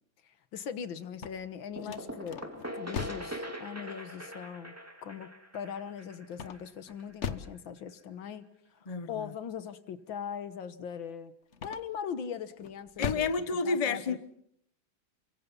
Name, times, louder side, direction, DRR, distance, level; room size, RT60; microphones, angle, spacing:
voice 1, 0.5-4.8 5.0-8.5 9.1-11.3 11.6-13.3 13.6-14.2, left 7 dB, 75° left, 2.0 m, -40 dB
sound 1, 1.0-3.4 6.3-7.6 11.5-12.1 12.6-13.4, left 6 dB, 45° left, 1.2 m, -39 dB
sound 2, 1.8-7.3, equal, 5° right, 2.4 m, -42 dB
voice 2, 8.9-9.3 13.0-14.2, left 4 dB, 25° left, 0.9 m, -30 dB
28.5 x 24.5 x 5.5 m
omnidirectional pair, 2.1 m